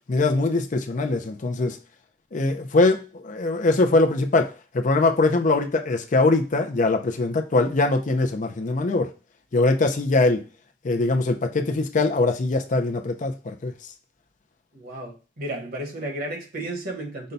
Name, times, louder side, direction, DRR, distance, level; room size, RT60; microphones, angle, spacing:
voice 1, 0.1-1.8 2.3-9.1 9.5-10.4 10.8-13.7, left 2 dB, 45° left, 0.5 m, -22 dB
voice 2, 14.7-17.3, right 1 dB, 55° right, 1.2 m, -33 dB
5.3 x 2.2 x 3.9 m
head